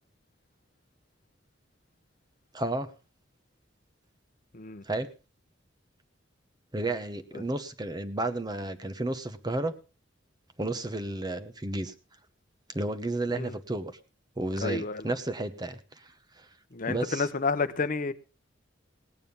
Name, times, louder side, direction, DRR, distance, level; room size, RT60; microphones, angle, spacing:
voice 1, 2.5-2.9 4.8-5.1 6.7-9.7 10.6-11.9 12.7-13.9 14.4-16.1 16.4-16.5 16.9-17.3, right 2 dB, 20° right, 10 dB, 1.0 m, -32 dB
voice 2, 4.5-4.8 7.3-7.4 13.3-13.5 14.6-15.1 16.7-18.1, left 4 dB, 45° left, 11 dB, 0.8 m, -30 dB
18.0 x 9.1 x 5.4 m, 0.34 s
head